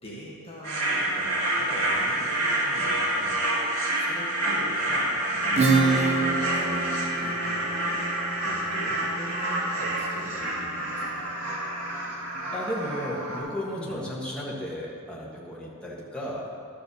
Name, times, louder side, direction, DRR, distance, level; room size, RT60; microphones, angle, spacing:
voice 1, 0.0-3.4 4.0-11.3 13.7-14.0, equal, 25° left, -5 dB, 1.4 m, -42 dB
sound 1, 0.6-13.4, right 1 dB, 70° right, 1.9 m, -28 dB
Acoustic guitar / Strum, 5.6-10.9, right 3 dB, 30° right, 0.6 m, -28 dB
voice 2, 12.5-16.5, equal, 5° left, -6 dB, 1.5 m, -34 dB
12.0 x 5.1 x 6.7 m, 2.3 s
head